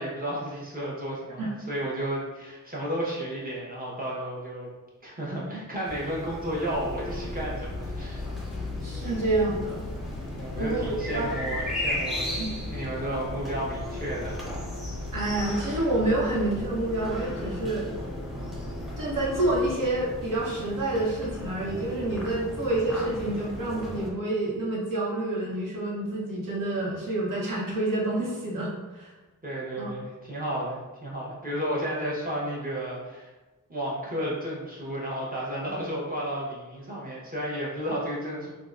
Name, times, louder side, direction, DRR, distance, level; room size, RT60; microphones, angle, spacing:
voice 1, 0.0-4.7 5.0-8.2 10.4-12.4 12.7-14.4 29.4-33.3 33.7-38.5, equal, 25° right, -5 dB, 0.9 m, -32 dB
sound 1, 5.8-24.1, equal, ahead, 0.6 m, -37 dB
Bus, 6.7-19.7, left 3 dB, 50° left, 0.4 m, -38 dB
voice 2, 8.8-9.9 10.6-11.3 12.4-12.5 15.1-17.9 19.0-29.1 29.8-29.9, right 2 dB, 75° right, -5 dB, 1.0 m, -28 dB
3.5 x 2.1 x 2.4 m, 1.2 s
wide cardioid pair, 90°, 33 cm